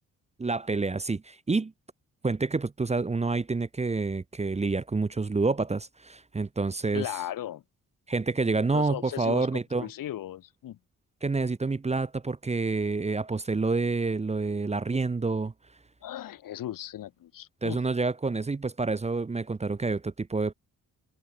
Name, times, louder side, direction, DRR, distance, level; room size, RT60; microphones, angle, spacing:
voice 1, 0.4-1.7 2.2-7.1 8.1-9.9 11.2-15.5 17.6-20.5, right 3 dB, 20° right, 0.8 m, -28 dB
voice 2, 6.9-7.6 8.7-9.5 9.8-10.8 16.0-17.8, left 12 dB, 75° left, 1.8 m, -37 dB
supercardioid pair, 65°, 33 cm